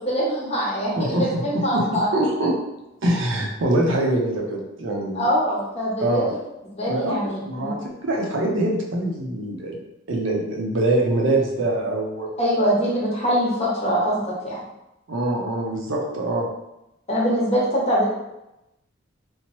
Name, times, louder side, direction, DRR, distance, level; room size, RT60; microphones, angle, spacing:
voice 1, 0.0-2.1 5.1-6.2 6.7-7.8 12.4-14.6 17.1-18.1, equal, 30° left, -5 dB, 0.8 m, -23 dB
voice 2, 1.7-2.5 3.0-5.3 6.0-6.3 6.9-9.7 10.1-12.3 15.1-16.5, right 1 dB, 65° right, -1 dB, 0.6 m, -24 dB
3.0 x 2.0 x 2.9 m, 0.92 s
head